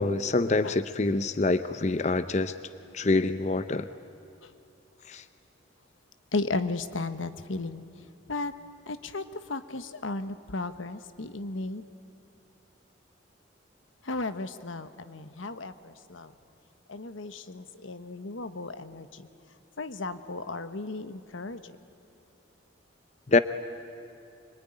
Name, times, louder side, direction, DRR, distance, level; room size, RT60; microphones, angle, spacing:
voice 1, 0.0-2.5 2.9-3.9 5.1-5.2 23.3-23.4, left 3 dB, 35° left, 11 dB, 0.6 m, -25 dB
voice 2, 6.3-7.8 8.3-8.5 8.9-11.8 14.0-16.3 16.9-19.3 19.8-21.8, left 3 dB, 85° left, 11 dB, 1.2 m, -35 dB
25.0 x 23.5 x 10.0 m, 2.9 s
head